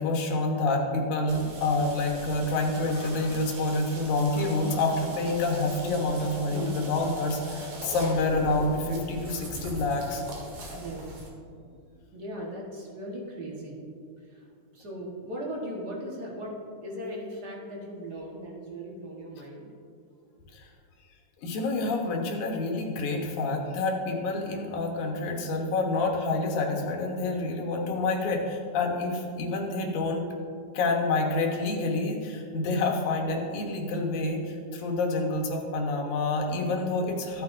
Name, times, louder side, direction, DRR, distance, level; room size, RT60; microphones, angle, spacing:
voice 1, 0.0-10.2 20.5-20.7 21.4-30.3 30.7-37.4, left 2 dB, 75° left, 1 dB, 2.6 m, -28 dB
sound 1, 1.3-11.3, right 1 dB, 65° right, 3.0 m, -40 dB
voice 2, 6.5-6.9 10.7-11.3 11.6-11.8 12.1-13.9 14.2-16.5 16.8-19.7, right 1 dB, 45° right, -3 dB, 1.5 m, -38 dB
15.0 x 9.0 x 2.6 m, 2.4 s
omnidirectional pair, 3.5 m